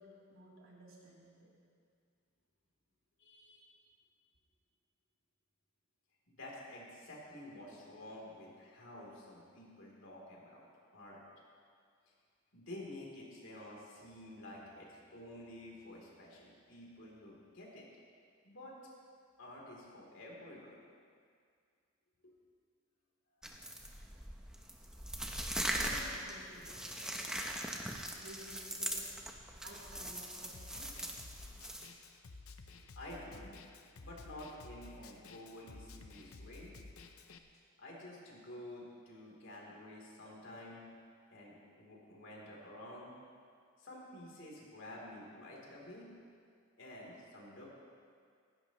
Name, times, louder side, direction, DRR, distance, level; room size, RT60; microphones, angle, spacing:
voice 1, 0.0-1.5 25.7-27.6 28.1-29.0 29.6-31.0 32.8-32.9, equal, 80° right, -5 dB, 3.4 m, -54 dB
voice 2, 3.2-3.7 6.3-10.7 10.9-11.2 12.5-17.9 18.4-18.8 19.4-20.8 22.2-22.3 33.0-33.5 34.0-36.7 37.8-40.8 41.3-43.1 43.8-46.1 46.8-47.7, left 1 dB, 65° left, -3 dB, 3.5 m, -50 dB
sound 1, 23.4-31.9, right 1 dB, 5° right, 0.8 m, -41 dB
Snare drum, 30.5-37.4, left 3 dB, 85° left, 0.8 m, -53 dB
16.5 x 16.5 x 3.1 m, 2.2 s
head